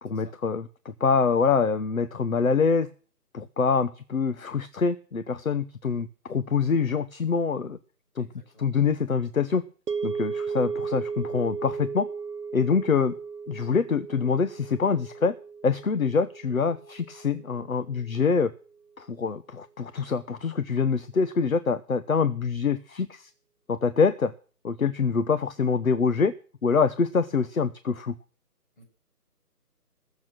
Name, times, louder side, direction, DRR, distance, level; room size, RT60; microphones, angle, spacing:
voice 1, 0.0-2.9 3.3-7.8 8.2-8.3 8.6-9.6 10.0-12.1 12.5-13.1 13.5-15.3 15.6-18.5 19.0-23.3 23.7-24.3 24.6-26.3 26.6-28.1, left 5 dB, 55° left, 12 dB, 1.1 m, -25 dB
voice 2, 8.2-8.7 28.8-28.9, equal, 30° left, 0 dB, 7.3 m, -55 dB
sound 1, 9.9-18.2, right 5 dB, 75° right, 1.1 m, -35 dB
20.0 x 7.4 x 6.1 m, 0.40 s
figure-of-eight pair, 175°, 48 cm